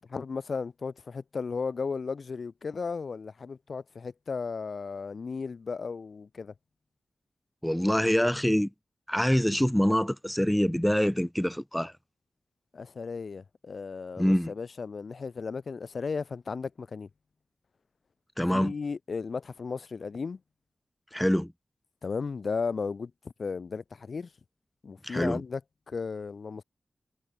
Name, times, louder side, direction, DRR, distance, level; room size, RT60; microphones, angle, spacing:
voice 1, 0.1-6.5 12.7-17.1 18.5-20.4 22.0-23.1 23.4-24.3 24.8-25.6 25.9-26.6, left 5 dB, 65° left, 1.1 m, -35 dB
voice 2, 7.6-8.7 9.1-11.9 14.2-14.5 18.4-18.7 21.1-21.5 25.0-25.4, equal, 5° left, 0.7 m, -25 dB
cardioid pair, 60°, 0 cm